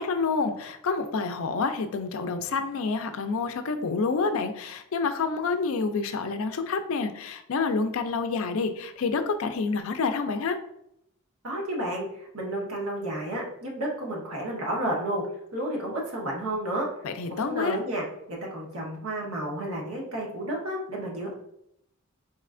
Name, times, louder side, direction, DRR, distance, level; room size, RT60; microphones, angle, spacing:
voice 1, 0.0-10.6 17.0-17.8, left 4 dB, 65° left, 8 dB, 0.4 m, -28 dB
voice 2, 11.4-15.3 15.5-16.9 17.3-21.3, right 1 dB, 75° right, -2 dB, 1.2 m, -31 dB
4.1 x 3.2 x 2.5 m, 0.77 s
head